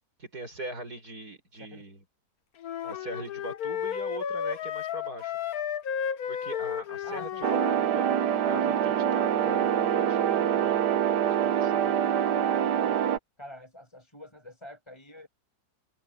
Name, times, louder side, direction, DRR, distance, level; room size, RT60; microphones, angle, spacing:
voice 1, 0.2-2.0 2.8-5.3 6.3-8.1 8.4-10.8 11.4-11.9, right 1 dB, 65° right, 7.4 m, -41 dB
sound 1, 2.6-7.8, left 8 dB, 65° left, 1.4 m, -33 dB
voice 2, 7.0-7.9 12.4-13.0 13.4-15.3, equal, 15° left, 6.6 m, -47 dB
sound 2, 7.4-13.2, right 9 dB, 85° right, 1.6 m, -25 dB
omnidirectional pair, 1.8 m